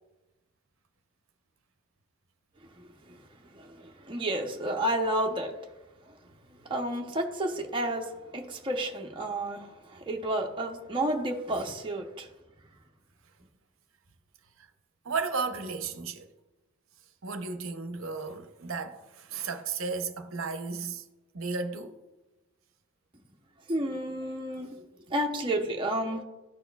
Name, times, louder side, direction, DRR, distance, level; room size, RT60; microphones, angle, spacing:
voice 1, 3.5-5.5 6.7-12.3 23.7-24.7 25.1-26.2, right 1 dB, 25° right, 0.7 m, -31 dB
voice 2, 15.0-16.3 17.2-21.0 21.3-22.0, right 4 dB, 65° right, 0.7 m, -34 dB
12.5 x 4.3 x 2.3 m
head